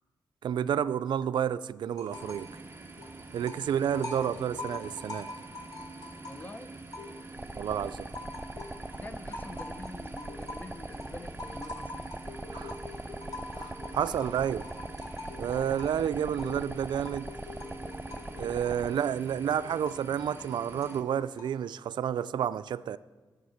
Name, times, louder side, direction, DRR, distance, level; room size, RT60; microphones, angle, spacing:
voice 1, 0.4-2.5 3.3-5.3 7.5-8.1 12.5-12.8 13.6-14.7 15.4-17.3 18.4-23.0, right 9 dB, 80° right, 0.3 m, -30 dB
sound 1, 1.9-2.5 2.8-7.5 7.9-21.7, left 2 dB, 55° left, 2.2 m, -45 dB
sound 2, 2.1-21.0, right 3 dB, 30° right, 0.9 m, -47 dB
voice 2, 6.3-6.9 8.9-12.2, left 2 dB, 25° left, 0.7 m, -46 dB
sound 3, 7.3-18.9, right 1 dB, 10° right, 0.4 m, -42 dB
13.5 x 7.3 x 6.4 m
wide cardioid pair, 100°, 8 cm